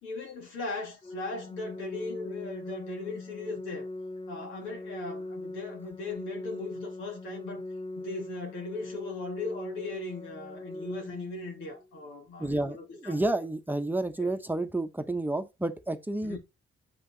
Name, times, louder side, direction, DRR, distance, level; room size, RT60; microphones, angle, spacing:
voice 1, 0.0-3.9 4.3-7.6 7.9-13.2 14.2-14.3 16.2-16.4, left 3 dB, 90° left, 3.1 m, -38 dB
Organ, 1.0-12.0, left 2 dB, 30° left, 0.7 m, -41 dB
voice 2, 12.4-16.4, right 2 dB, 10° right, 0.9 m, -30 dB
7.6 x 5.5 x 4.0 m
cardioid pair, 90°, 20 cm